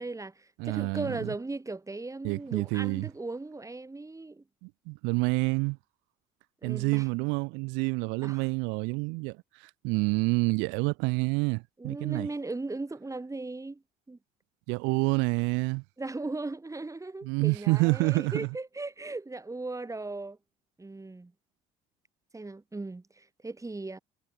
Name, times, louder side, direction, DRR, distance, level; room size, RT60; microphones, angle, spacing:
voice 1, 0.0-4.4 6.6-7.1 8.2-8.5 11.8-13.8 14.1-14.2 16.0-20.4 20.8-21.3 22.3-24.0, right 2 dB, 15° right, 7.8 m, -37 dB
voice 2, 0.6-1.3 2.2-3.1 4.6-5.8 6.6-9.4 9.8-12.3 14.7-15.8 17.2-18.5, right 30 dB, 80° right, 2.1 m, -28 dB
supercardioid pair, 75°, 19 cm